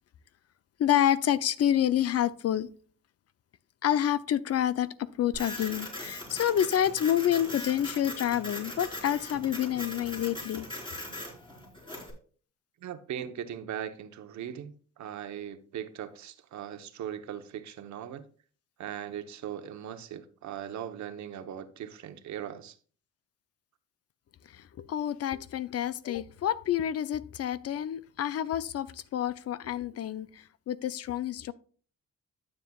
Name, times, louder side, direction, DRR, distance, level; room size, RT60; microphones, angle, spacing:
voice 1, 0.8-2.7 3.8-10.7 24.5-31.5, left 11 dB, 55° left, 0.5 m, -28 dB
Printer, 5.3-12.1, left 1 dB, 15° left, 3.8 m, -40 dB
voice 2, 12.8-18.2 18.8-22.8, right 10 dB, 70° right, 1.0 m, -39 dB
12.0 x 7.5 x 2.3 m
cardioid pair, 90°, 30 cm